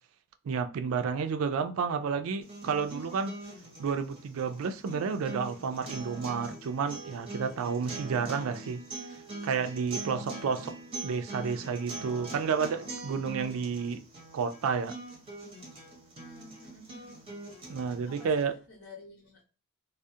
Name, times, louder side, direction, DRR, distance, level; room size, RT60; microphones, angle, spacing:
voice 1, 0.5-3.3 3.8-8.8 9.4-10.7 11.0-14.0 14.3-14.9 17.7-18.5, right 6 dB, 75° right, 0.3 m, -31 dB
sound 1, 2.4-18.4, right 2 dB, 25° right, 0.6 m, -43 dB
voice 2, 16.2-17.2 17.5-19.4, left 1 dB, 75° left, 1.0 m, -51 dB
2.3 x 2.0 x 2.6 m
head